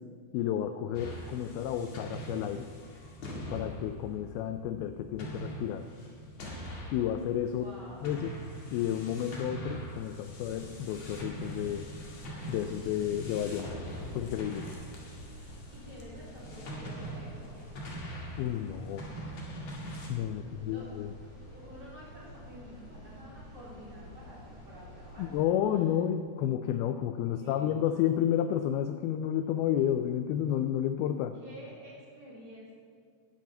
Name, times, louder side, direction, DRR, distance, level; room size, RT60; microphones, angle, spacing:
voice 1, 0.3-2.7 3.5-5.9 6.9-7.6 8.0-8.3 8.7-11.9 12.5-13.7 14.2-14.7 18.4-19.1 20.1-21.1 25.2-31.4, left 10 dB, 85° left, 8 dB, 2.2 m, -31 dB
sound 1, 0.9-20.1, right 1 dB, 50° left, 2.5 m, -43 dB
voice 2, 7.4-8.1 15.7-17.5 20.3-20.9 21.5-25.5 27.3-27.7 31.4-32.7, equal, 25° right, -6 dB, 3.1 m, -49 dB
sound 2, 10.3-25.4, left 1 dB, 30° left, 3.0 m, -50 dB
10.5 x 7.7 x 7.7 m, 2.1 s
omnidirectional pair, 4.9 m